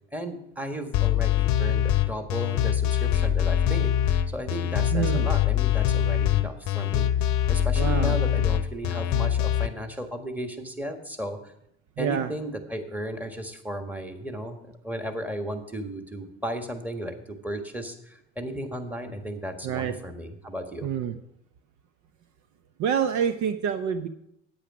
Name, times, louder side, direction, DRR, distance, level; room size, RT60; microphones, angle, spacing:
voice 1, 0.1-11.5 12.0-14.6 14.8-20.9, equal, 5° right, 6 dB, 1.6 m, -35 dB
sound 1, 0.9-9.7, left 10 dB, 50° left, 0.8 m, -23 dB
voice 2, 4.9-5.3 7.8-8.2 12.0-12.3 19.6-19.9 20.8-21.1 22.8-24.1, right 8 dB, 50° right, 10 dB, 0.8 m, -27 dB
8.9 x 8.6 x 6.1 m, 0.79 s
hypercardioid pair, 75°, 36 cm